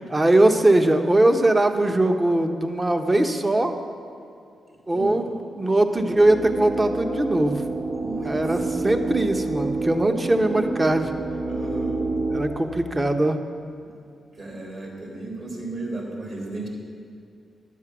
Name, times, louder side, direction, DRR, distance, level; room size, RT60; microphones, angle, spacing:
voice 1, 0.1-3.7 4.9-7.6 8.2-11.1 12.3-13.4, right 1 dB, 25° right, 6 dB, 1.0 m, -21 dB
voice 2, 4.9-5.2 8.0-8.3 11.4-12.0 14.4-16.7, right 2 dB, 55° right, -1 dB, 3.3 m, -34 dB
sound 1, 6.0-12.4, right 3 dB, 70° right, 1.8 m, -28 dB
11.5 x 7.5 x 6.1 m, 2.5 s
supercardioid pair, 45°, 0 cm